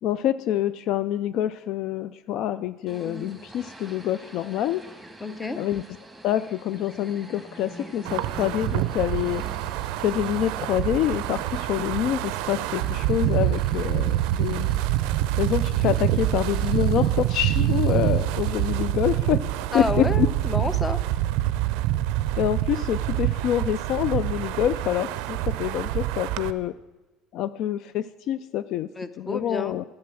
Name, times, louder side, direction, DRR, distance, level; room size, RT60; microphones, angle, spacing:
voice 1, 0.0-4.8 5.6-5.8 6.2-9.4 10.0-14.7 15.4-19.5 19.7-20.3 22.4-26.7 27.3-28.9 29.2-29.8, left 11 dB, 65° left, 15 dB, 0.3 m, -26 dB
sound 1, 2.9-18.7, right 1 dB, ahead, 1.8 m, -46 dB
voice 2, 5.2-5.6 19.7-21.0 29.0-29.8, left 3 dB, 20° left, 13 dB, 0.7 m, -29 dB
Wind, 8.0-26.5, right 14 dB, 75° right, 0.4 m, -26 dB
10.5 x 7.7 x 6.1 m, 1.1 s
supercardioid pair, 90°, 0 cm